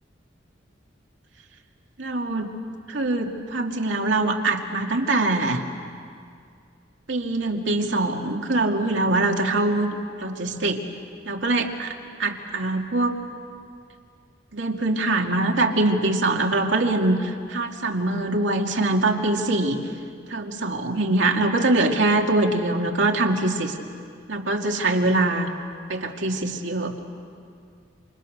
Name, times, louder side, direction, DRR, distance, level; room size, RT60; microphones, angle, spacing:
voice 1, 2.0-2.5 2.9-5.6 7.1-9.9 10.2-10.8 11.3-11.9 12.2-13.2 14.5-19.8 20.3-23.8 24.3-25.5 25.9-26.9, right 2 dB, 80° right, 2 dB, 2.3 m, -23 dB
28.5 x 27.5 x 6.6 m, 2.3 s
head